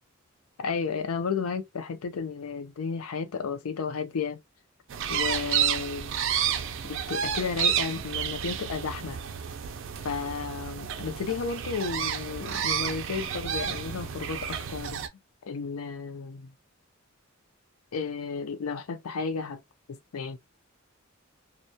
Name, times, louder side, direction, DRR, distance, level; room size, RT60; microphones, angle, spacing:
voice 1, 0.6-4.4 5.1-6.2 6.8-9.2 10.0-15.0 15.4-16.5 17.9-19.6 19.9-20.4, left 5 dB, 90° left, 0.5 m, -33 dB
sound 1, 4.9-15.1, right 8 dB, 60° right, 0.4 m, -30 dB
2.2 x 2.2 x 2.6 m
head